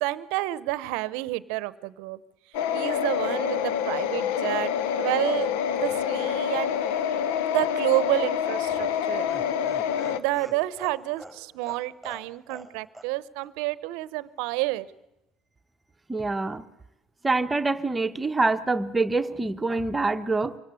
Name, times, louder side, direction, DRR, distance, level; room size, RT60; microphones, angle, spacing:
voice 1, 0.0-2.2 2.7-4.7 5.0-6.8 7.5-9.2 10.2-14.9, right 18 dB, 75° right, 18 dB, 0.7 m, -29 dB
sound 1, 2.5-10.2, left 8 dB, 80° left, 0.8 m, -27 dB
Laughter, 8.7-12.7 12.9-13.1 13.4-13.5, right 1 dB, 5° left, 5.3 m, -45 dB
voice 2, 16.1-16.6 17.2-20.6, right 3 dB, 20° right, 9 dB, 1.0 m, -25 dB
25.0 x 17.5 x 8.2 m, 0.89 s
hypercardioid pair, 70°, 0 cm